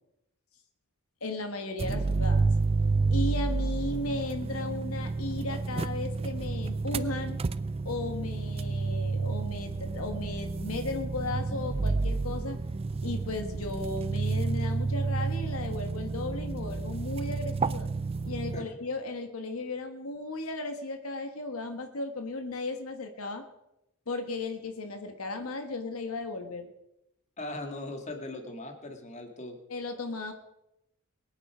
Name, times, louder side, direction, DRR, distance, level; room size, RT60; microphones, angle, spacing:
voice 1, 1.2-2.5 3.1-7.4 7.8-12.6 13.0-17.9 18.2-23.4 24.1-26.7 29.7-30.3, left 2 dB, 90° left, 6 dB, 1.4 m, -35 dB
sound 1, 1.8-18.6, right 3 dB, 25° right, 0.4 m, -30 dB
voice 2, 27.4-29.6, left 2 dB, 35° left, 4 dB, 2.0 m, -39 dB
22.0 x 8.9 x 5.0 m, 0.86 s
head